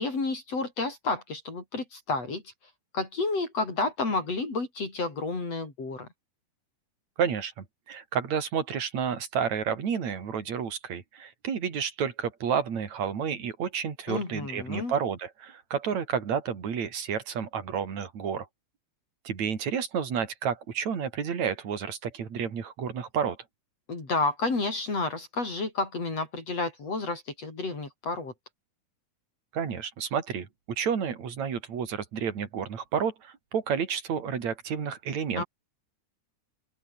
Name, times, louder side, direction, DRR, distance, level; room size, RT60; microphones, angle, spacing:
voice 1, 0.0-2.4 2.9-6.1 14.1-14.9 23.9-28.3 35.4-35.5, left 3 dB, 50° left, 6.5 m, -30 dB
voice 2, 7.2-18.5 19.2-23.4 29.5-30.5 30.8-35.4, right 7 dB, 60° right, 4.4 m, -30 dB
open air
omnidirectional pair, 3.7 m